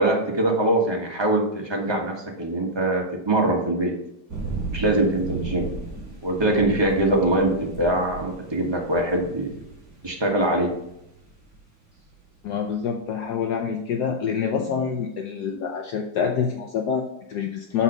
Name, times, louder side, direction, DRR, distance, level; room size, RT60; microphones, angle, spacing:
voice 1, 0.0-4.0 4.7-5.7 6.2-9.5 10.0-10.7, right 1 dB, 15° right, 0 dB, 1.2 m, -23 dB
sound 1, 4.3-12.5, right 3 dB, 50° right, 3.1 m, -35 dB
voice 2, 12.4-17.8, left 7 dB, 65° left, 3 dB, 1.2 m, -26 dB
7.1 x 4.4 x 5.4 m, 0.81 s
omnidirectional pair, 2.1 m